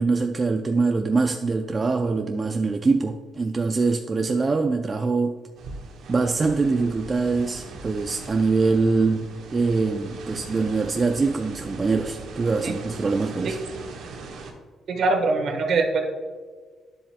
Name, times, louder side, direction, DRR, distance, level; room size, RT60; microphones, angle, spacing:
voice 1, 0.0-5.4 6.1-13.6, right 4 dB, 30° right, 5 dB, 0.4 m, -23 dB
sound 1, 5.6-14.5, right 3 dB, 80° right, 1.2 m, -40 dB
voice 2, 14.9-16.0, right 3 dB, 65° right, 4 dB, 1.3 m, -22 dB
10.0 x 7.3 x 2.2 m, 1.5 s
cardioid pair, 90°, 0 cm